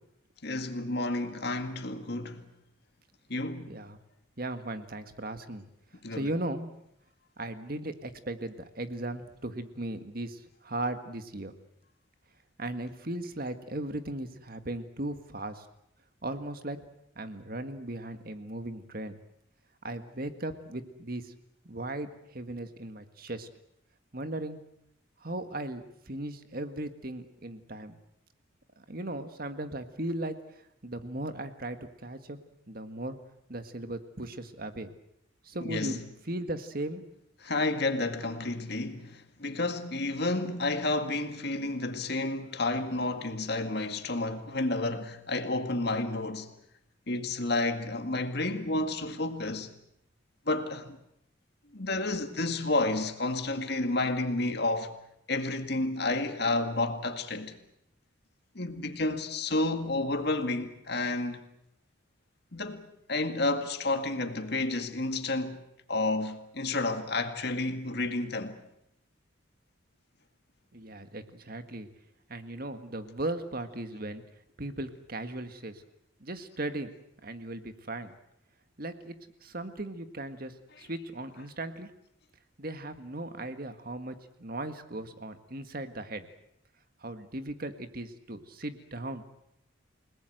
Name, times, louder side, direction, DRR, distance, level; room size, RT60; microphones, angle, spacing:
voice 1, 0.4-2.5 3.3-3.8 6.0-6.3 35.6-36.0 37.4-46.5 47.1-49.7 50.5-51.0 51.7-54.9 55.3-57.6 58.6-61.4 62.5-65.6 65.9-68.6 80.7-80.9, left 2 dB, 55° left, 2.0 m, -31 dB
voice 2, 3.7-4.0 4.4-5.7 6.1-6.7 7.4-11.5 12.6-15.7 16.2-16.8 17.2-19.2 19.8-21.3 21.7-23.5 24.1-24.6 25.2-28.0 28.8-30.4 30.8-32.4 32.7-33.2 33.5-34.9 35.4-36.0 36.3-37.1 70.7-71.9 72.3-74.2 74.6-75.8 76.2-76.9 77.2-78.1 78.8-79.2 79.4-81.9 82.6-86.3 87.0-89.2, right 1 dB, 50° right, 1.7 m, -37 dB
29.5 x 19.0 x 8.0 m
head